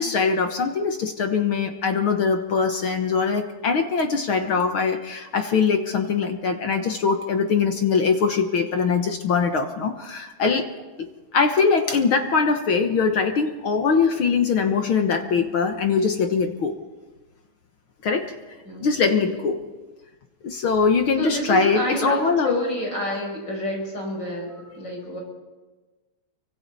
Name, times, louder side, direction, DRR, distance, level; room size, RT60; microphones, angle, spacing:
voice 1, 0.0-10.7 11.0-11.1 11.3-16.7 18.0-18.4 18.8-19.6 20.4-22.6, left 5 dB, 60° left, 5 dB, 1.4 m, -22 dB
voice 2, 18.6-19.4 21.2-25.2, left 1 dB, 30° left, 0 dB, 6.9 m, -29 dB
29.0 x 24.5 x 4.1 m, 1.2 s
omnidirectional pair, 3.7 m